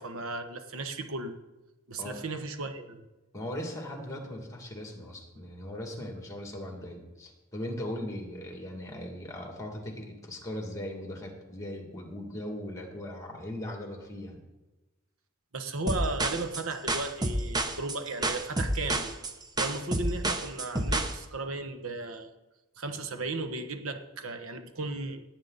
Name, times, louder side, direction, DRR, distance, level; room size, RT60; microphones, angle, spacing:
voice 1, 0.0-1.4 1.9-3.1 15.5-19.1 19.6-22.3 22.8-25.2, right 2 dB, 80° right, 7 dB, 1.3 m, -35 dB
voice 2, 3.3-14.4, left 1 dB, 15° left, 2 dB, 2.4 m, -39 dB
sound 1, 15.9-21.2, right 1 dB, 20° right, 0.9 m, -29 dB
18.0 x 8.7 x 4.1 m, 1.1 s
head